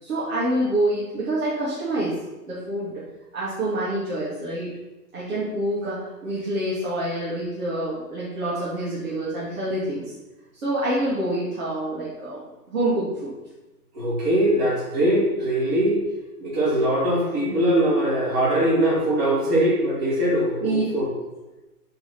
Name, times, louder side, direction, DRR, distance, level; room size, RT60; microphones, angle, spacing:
voice 1, 0.0-2.1 2.5-3.0 3.3-4.7 5.1-10.0 10.5-12.4 12.7-13.3 17.5-17.6 20.6-20.8, right 1 dB, 60° right, -8 dB, 2.8 m, -26 dB
voice 2, 13.9-16.0 16.4-21.1, right 1 dB, 25° right, -8 dB, 3.2 m, -21 dB
9.1 x 4.9 x 6.1 m, 1.1 s
hypercardioid pair, 175°, 46 cm